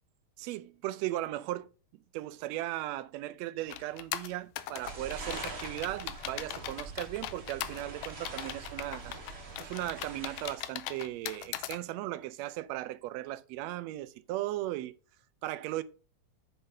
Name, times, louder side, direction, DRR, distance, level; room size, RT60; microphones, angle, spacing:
voice 1, 0.4-1.7 2.1-9.2 9.6-14.9 15.4-15.8, right 15 dB, 80° right, 1.7 m, -37 dB
sound 1, 3.7-11.8, left 13 dB, 90° left, 2.1 m, -40 dB
sound 2, 4.8-10.6, right 3 dB, 45° right, 2.7 m, -44 dB
7.9 x 4.9 x 5.5 m
omnidirectional pair, 3.4 m